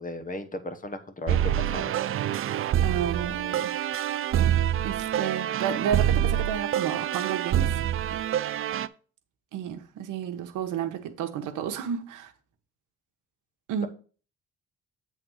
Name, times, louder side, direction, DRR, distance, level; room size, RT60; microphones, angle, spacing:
voice 1, 0.0-1.9, left 1 dB, 25° left, 1.1 m, -36 dB
sound 1, 1.3-8.9, right 11 dB, 45° right, 0.4 m, -26 dB
voice 2, 2.8-3.7 4.8-7.7 8.1-8.2 9.5-12.3 13.7-13.9, right 8 dB, 85° right, 1.1 m, -31 dB
7.8 x 3.7 x 6.2 m
cardioid pair, 90°, 30 cm